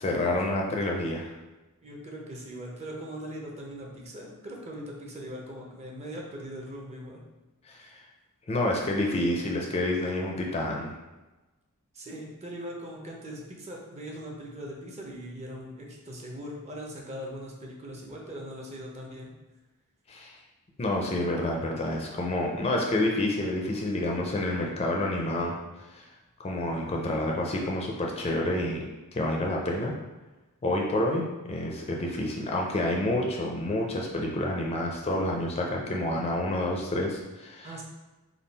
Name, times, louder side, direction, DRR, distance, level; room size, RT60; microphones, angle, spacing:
voice 1, 0.0-1.3 7.7-7.9 8.5-10.9 20.1-20.4 20.8-25.6 25.9-26.0 26.4-28.8 29.1-29.9 30.6-37.7, left 1 dB, 25° left, 0 dB, 0.4 m, -28 dB
voice 2, 1.8-7.2 11.9-19.3 37.6-37.8, equal, 30° right, -1 dB, 0.6 m, -40 dB
3.6 x 2.3 x 3.9 m, 1.1 s
head